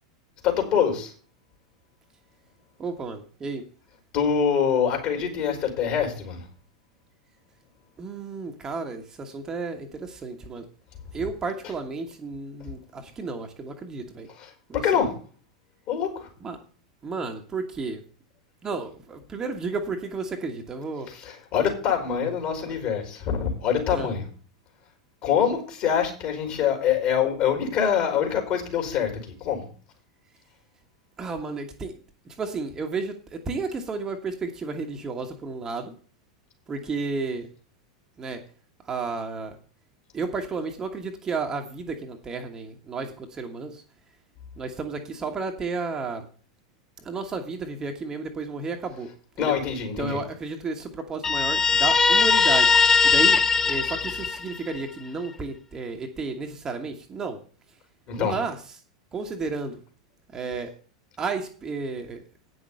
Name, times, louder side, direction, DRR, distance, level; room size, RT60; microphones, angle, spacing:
voice 1, 0.4-1.1 4.1-6.5 14.4-15.1 15.9-16.3 21.2-24.2 25.2-29.7 49.4-50.2 58.1-58.3, left 8 dB, 45° left, 3 dB, 3.9 m, -25 dB
voice 2, 2.8-3.6 8.0-10.7 11.1-14.3 14.7-15.0 16.4-16.6 17.0-18.0 18.6-21.1 22.1-22.3 22.6-22.8 23.9-24.1 31.2-35.9 36.7-37.5 38.2-38.5 38.8-39.6 40.1-43.8 44.6-46.3 47.0-49.1 49.4-49.6 50.0-57.4 57.7-57.8 58.1-58.8 59.1-59.8 60.3-60.7 61.2-62.2, right 4 dB, 20° right, 4 dB, 1.4 m, -32 dB
Guitar, 51.2-54.8, left 5 dB, 15° left, 0.6 m, -20 dB
9.3 x 6.2 x 6.8 m, 0.41 s
figure-of-eight pair, 85°, 3 cm